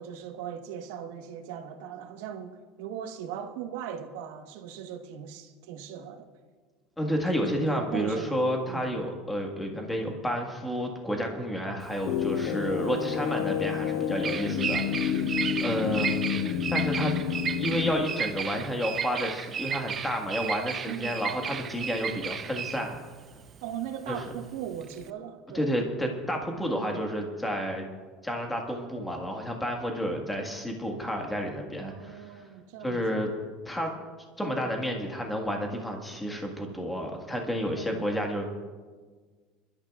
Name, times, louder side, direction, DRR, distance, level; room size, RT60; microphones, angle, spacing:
voice 1, 0.0-6.3 7.3-9.0 12.3-12.7 15.4-15.8 20.9-21.3 23.6-25.7 26.7-27.0 31.7-33.2 37.7-38.0, right 9 dB, 80° right, 1.2 m, -39 dB
voice 2, 7.0-15.3 15.6-16.3 16.7-17.1 17.6-23.0 24.1-24.2 25.5-27.9 28.2-32.5 32.8-33.3 33.6-33.9 34.4-38.5, equal, 5° left, 1.6 m, -30 dB
Bird vocalization bird call bird song, 11.8-25.1, right 7 dB, 25° right, 0.4 m, -34 dB
sound 1, 12.0-17.9, left 8 dB, 75° left, 0.7 m, -29 dB
27.0 x 12.5 x 2.4 m
cardioid pair, 160°, 0 cm